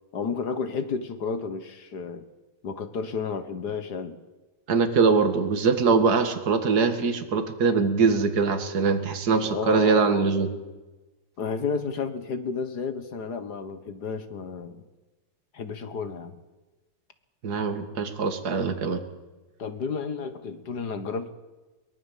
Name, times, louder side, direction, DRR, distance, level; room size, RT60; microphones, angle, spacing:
voice 1, 0.1-2.3 2.6-4.2 9.4-10.3 11.4-14.8 15.5-16.4 19.6-21.3, left 5 dB, 55° left, 11 dB, 1.9 m, -32 dB
voice 2, 4.7-10.5 17.4-19.0, right 5 dB, 50° right, 7 dB, 2.3 m, -22 dB
23.0 x 19.0 x 7.4 m, 1.2 s
omnidirectional pair, 2.2 m